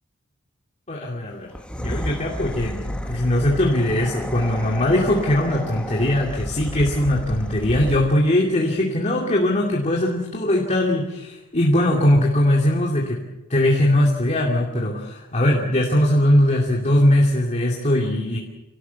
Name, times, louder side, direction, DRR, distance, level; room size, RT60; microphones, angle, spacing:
voice 1, 0.9-1.5 1.8-18.4, left 1 dB, 35° left, -1 dB, 2.6 m, -20 dB
sound 1, 1.5-8.3, equal, 5° left, 1.4 m, -32 dB
25.5 x 18.0 x 8.3 m, 1.0 s
head